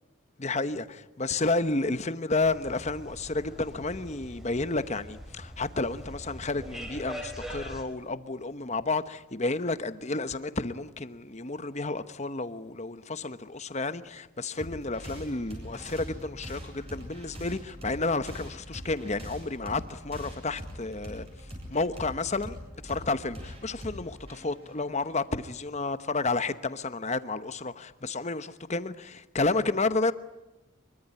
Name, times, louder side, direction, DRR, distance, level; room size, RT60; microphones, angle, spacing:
voice 1, 0.4-22.6 22.8-30.1, left 3 dB, 30° left, 1.0 m, -31 dB
sound 1, 2.4-7.8, equal, ahead, 4.0 m, -42 dB
sound 2, 14.6-25.7, equal, 25° right, 7.8 m, -43 dB
25.5 x 23.5 x 9.7 m
head